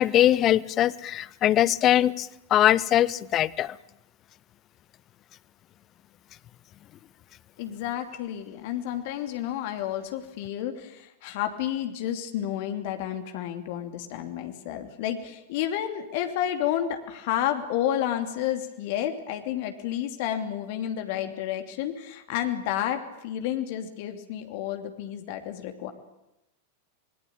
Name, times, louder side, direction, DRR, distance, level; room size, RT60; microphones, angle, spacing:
voice 1, 0.0-3.8, left 12 dB, 30° left, 21 dB, 0.9 m, -22 dB
voice 2, 7.6-25.9, left 11 dB, 50° left, 6 dB, 2.8 m, -30 dB
25.5 x 22.5 x 8.8 m, 0.89 s
figure-of-eight pair, 90°, 0 cm